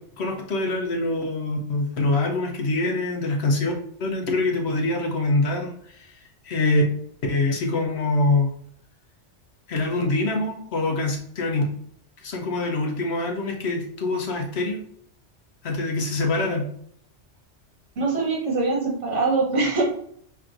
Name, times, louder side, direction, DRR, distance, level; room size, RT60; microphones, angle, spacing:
voice 1, 0.2-3.7 4.0-6.2 6.4-6.8 7.3-8.5 9.7-11.7 12.2-14.8 15.6-16.7, left 2 dB, 65° left, 2 dB, 1.0 m, -24 dB
voice 2, 18.0-19.8, right 3 dB, 75° right, -2 dB, 1.5 m, -23 dB
5.9 x 3.4 x 2.5 m, 0.64 s
omnidirectional pair, 1.2 m